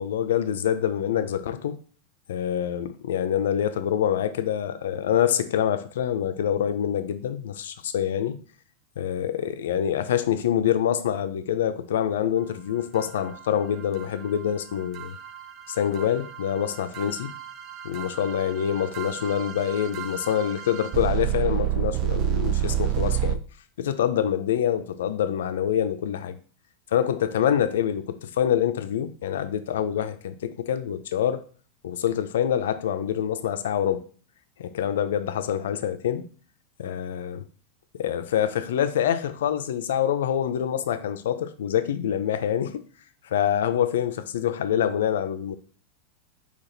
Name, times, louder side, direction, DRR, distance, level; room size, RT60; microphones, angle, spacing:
voice 1, 0.0-1.8 2.3-8.4 9.0-15.2 15.7-17.3 17.8-23.4 23.8-26.4 26.9-31.4 31.8-34.0 34.6-36.3 36.8-37.4 38.0-42.8 43.2-45.6, left 9 dB, 80° left, 0.5 m, -26 dB
sound 1, 13.0-23.4, right 12 dB, 45° right, 0.4 m, -30 dB
4.1 x 2.9 x 3.9 m
hypercardioid pair, 125°, 0 cm